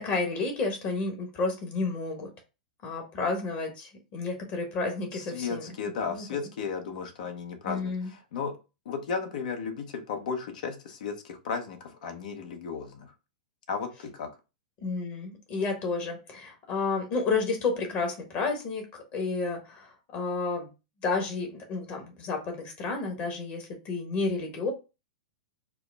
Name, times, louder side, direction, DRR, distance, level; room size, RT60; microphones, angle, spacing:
voice 1, 0.0-2.3 2.8-5.7 6.1-6.4 7.6-8.1 14.8-20.7 21.0-24.7, left 3 dB, 45° left, 3 dB, 1.3 m, -31 dB
voice 2, 5.1-8.6 8.8-13.1 13.7-14.3, left 5 dB, 65° left, 5 dB, 1.0 m, -34 dB
4.7 x 2.0 x 3.4 m, 0.29 s
hypercardioid pair, 115°, 5 cm